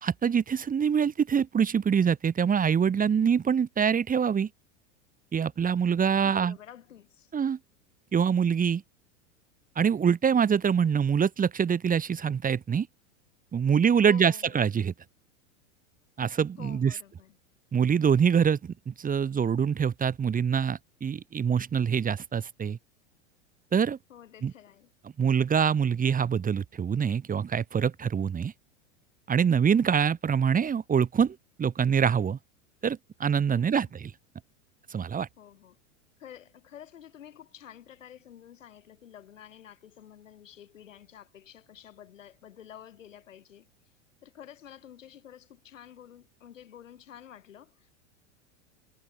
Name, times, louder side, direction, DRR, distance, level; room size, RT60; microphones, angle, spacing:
voice 1, 0.0-4.5 5.3-6.6 7.3-7.6 8.1-8.8 9.8-12.9 13.5-14.9 16.2-16.9 17.7-22.8 23.7-24.0 24.4-24.5 25.2-28.5 29.3-32.4 32.8-34.1 34.9-35.3, right 7 dB, 20° right, 2.5 m, -25 dB
voice 2, 6.2-7.3 14.0-14.6 16.6-17.4 24.1-24.9 33.6-33.9 35.4-35.8 36.2-43.6 44.2-48.0, left 10 dB, 85° left, 6.7 m, -50 dB
hypercardioid pair, 105°, 37 cm